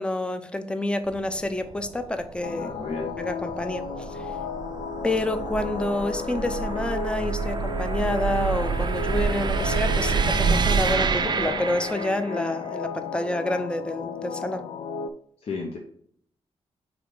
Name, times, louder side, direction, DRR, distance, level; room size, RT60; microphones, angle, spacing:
voice 1, 0.0-2.8 3.2-4.2 5.0-14.7, left 1 dB, 10° left, 9 dB, 0.6 m, -28 dB
sound 1, 1.1-12.5, right 5 dB, 45° right, 0.5 m, -28 dB
sound 2, 2.4-15.1, left 5 dB, 85° left, 0.4 m, -34 dB
voice 2, 2.6-3.1 15.4-15.8, left 3 dB, 70° left, 0 dB, 0.9 m, -33 dB
5.0 x 3.9 x 4.8 m, 0.62 s
cardioid pair, 105°, 11 cm